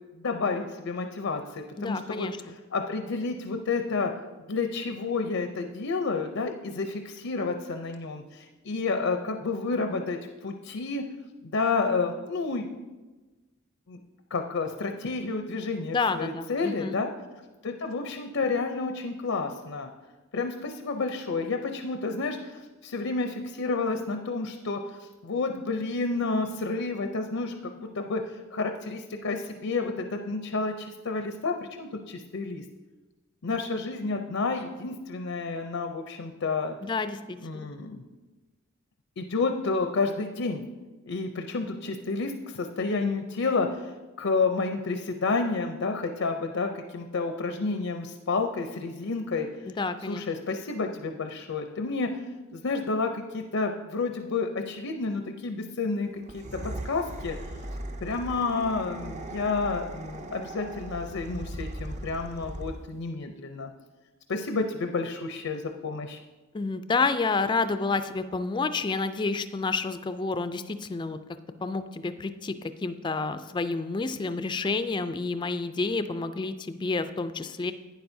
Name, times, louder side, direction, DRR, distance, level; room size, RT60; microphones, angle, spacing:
voice 1, 0.1-2.3 2.7-4.1 4.5-11.0 11.4-12.7 13.9-14.0 14.3-17.1 17.6-19.9 20.3-32.6 33.4-36.8 37.4-38.0 39.2-40.6 41.0-43.9 44.2-49.5 50.1-52.1 52.5-57.4 58.0-63.7 64.3-66.2, left 4 dB, 80° left, 5 dB, 0.6 m, -30 dB
voice 2, 1.8-2.5 15.9-17.0 36.8-37.7 49.7-50.2 66.5-71.2 71.6-72.5 72.8-77.7, left 4 dB, 20° left, 10 dB, 0.3 m, -29 dB
sound 1, 56.2-63.0, right 1 dB, 35° right, 0.5 m, -39 dB
11.5 x 9.2 x 2.7 m, 1.2 s
head